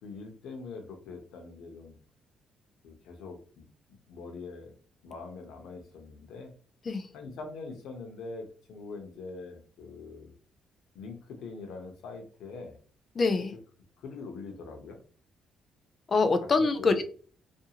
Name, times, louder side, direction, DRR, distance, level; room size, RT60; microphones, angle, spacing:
voice 1, 0.0-2.0 2.8-3.6 4.1-4.7 5.0-6.5 7.1-10.3 10.9-12.8 14.0-15.0 16.6-17.0, left 4 dB, 85° left, 4 dB, 0.7 m, -43 dB
voice 2, 13.2-13.5 16.1-17.0, left 3 dB, 40° left, 8 dB, 0.5 m, -25 dB
2.5 x 2.3 x 2.8 m, 0.42 s
cardioid pair, 90°, 0 cm